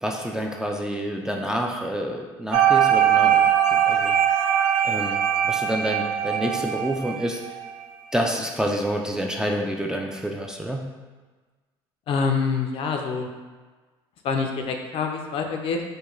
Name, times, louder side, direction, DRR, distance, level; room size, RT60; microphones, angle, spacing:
voice 1, 0.0-4.2 4.8-7.4 8.1-10.9, equal, 5° right, 1 dB, 0.3 m, -28 dB
sound 1, 2.5-7.6, right 9 dB, 75° right, 0.4 m, -21 dB
voice 2, 12.1-13.3 14.2-15.8, left 5 dB, 55° left, 3 dB, 0.5 m, -26 dB
3.6 x 2.2 x 3.0 m, 1.3 s
supercardioid pair, 90°, 11 cm